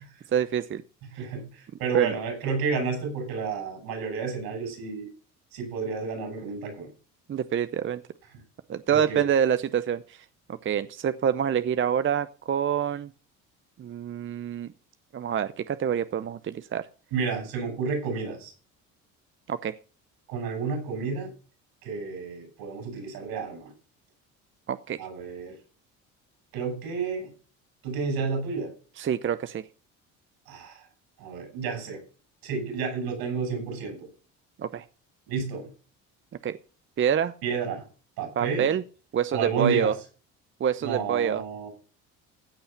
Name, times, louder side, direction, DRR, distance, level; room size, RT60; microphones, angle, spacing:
voice 1, 0.3-0.8 1.9-2.2 7.3-8.0 8.7-10.2 10.6-13.1 13.8-14.7 15.1-16.9 19.5-19.7 24.7-25.0 29.0-29.6 34.6-34.8 36.4-36.6 37.0-37.3 38.4-38.8 39.1-39.9 40.6-41.4, right 8 dB, 30° right, 13 dB, 0.6 m, -26 dB
voice 2, 1.2-5.1 5.5-6.9 8.9-9.2 17.1-18.5 20.3-21.3 21.8-23.7 25.0-25.6 26.5-27.3 27.8-28.7 30.5-30.8 31.2-32.0 32.4-34.1 35.3-35.7 37.4-37.8 38.2-38.7 39.3-39.9 40.8-41.7, right 5 dB, 75° right, 4 dB, 6.8 m, -31 dB
15.5 x 5.6 x 5.8 m, 0.37 s
hypercardioid pair, 70°, 37 cm